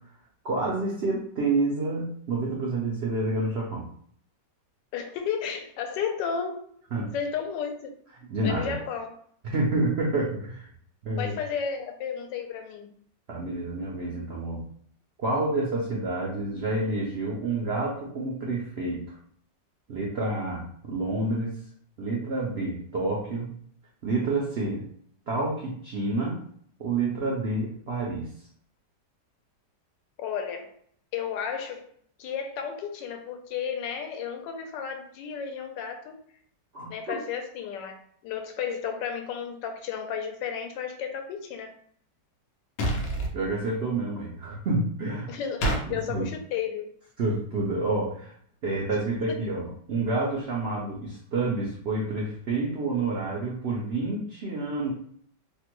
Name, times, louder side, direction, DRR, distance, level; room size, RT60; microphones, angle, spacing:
voice 1, 0.4-3.9 6.9-7.1 8.2-8.7 9.5-10.7 11.0-11.3 13.3-14.6 15.2-19.2 19.9-21.6 22.0-23.5 24.0-24.8 25.3-26.4 26.8-28.3 36.7-37.2 43.3-45.3 45.9-46.3 47.2-48.3 48.6-54.9, right 2 dB, 85° right, -3 dB, 0.5 m, -28 dB
voice 2, 4.9-6.7 7.1-7.9 8.4-9.1 11.2-12.9 30.2-30.7 31.1-31.9 32.2-36.2 36.9-41.7 45.3-46.9, left 7 dB, 85° left, 4 dB, 1.3 m, -33 dB
sound 1, 42.8-43.3 45.6-45.8, right 1 dB, 65° left, 1.0 m, -26 dB
3.3 x 2.1 x 3.0 m, 0.62 s
omnidirectional pair, 1.9 m